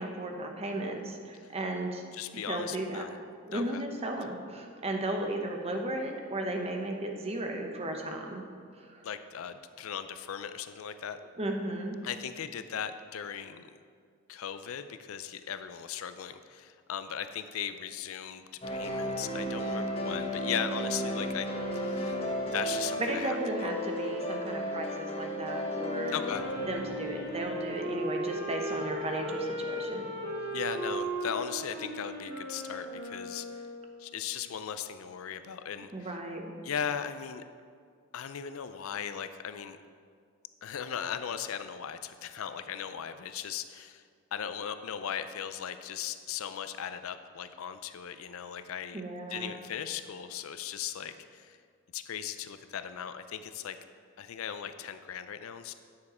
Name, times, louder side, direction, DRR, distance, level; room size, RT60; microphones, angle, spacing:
voice 1, 0.0-2.0 2.3-3.0 3.5-8.4 8.9-9.0 11.4-12.0 23.0-26.1 26.7-30.1 35.9-36.5 48.9-49.5, right 1 dB, 30° right, 3 dB, 0.8 m, -35 dB
voice 2, 2.1-3.2 3.5-3.8 9.0-11.2 12.0-13.7 14.3-21.5 21.7-22.2 22.5-23.7 26.1-26.4 30.5-33.4 34.0-36.1 36.6-37.4 38.1-39.8 40.6-44.0 44.3-49.0 49.3-51.6 51.9-53.8 54.2-55.7, left 8 dB, 70° left, 10 dB, 0.4 m, -38 dB
sound 1, 18.6-30.7, equal, 25° left, 0.9 m, -35 dB
Wind instrument woodwind instrument, 25.7-34.1, right 1 dB, 85° right, 1.9 m, -37 dB
9.5 x 6.5 x 4.2 m, 2.1 s
head